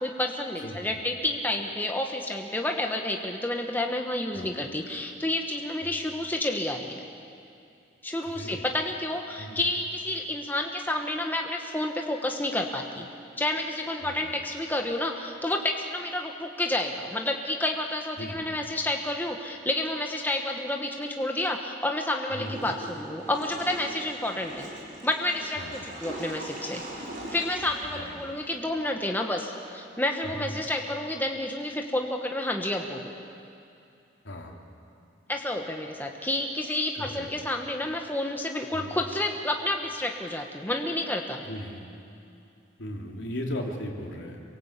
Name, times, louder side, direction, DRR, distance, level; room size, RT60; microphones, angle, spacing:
voice 1, 0.0-7.0 8.0-13.1 13.4-24.7 25.0-26.8 27.3-33.1 35.3-41.4, left 1 dB, 10° left, 2 dB, 1.3 m, -30 dB
voice 2, 0.6-1.0 4.3-4.6 5.8-6.0 8.2-8.7 9.4-9.6 14.0-14.4 18.2-18.5 22.3-22.6 25.6-25.9 27.9-28.2 30.2-30.5 34.2-34.5 36.9-37.3 38.7-38.9 41.4-41.8 42.8-44.4, left 1 dB, 70° left, 1 dB, 3.3 m, -37 dB
Water / Toilet flush, 22.4-28.6, right 1 dB, 40° right, 5.3 m, -41 dB
26.5 x 23.5 x 8.3 m, 2.6 s
head